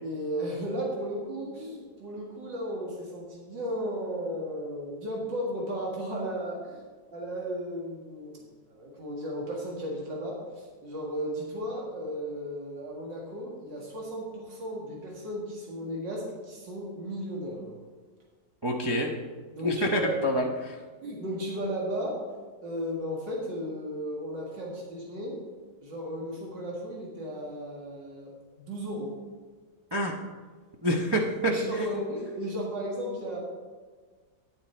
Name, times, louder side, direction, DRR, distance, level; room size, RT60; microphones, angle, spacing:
voice 1, 0.0-6.8 7.1-8.4 8.7-17.7 19.5-20.4 21.0-22.2 22.6-25.4 25.8-29.1 31.5-33.4, equal, 85° right, -2 dB, 2.4 m, -35 dB
voice 2, 18.6-19.1 19.6-20.8 29.9-30.1 30.8-31.9, equal, 40° right, 0 dB, 0.3 m, -27 dB
9.5 x 8.7 x 4.3 m, 1.5 s
omnidirectional pair, 1.9 m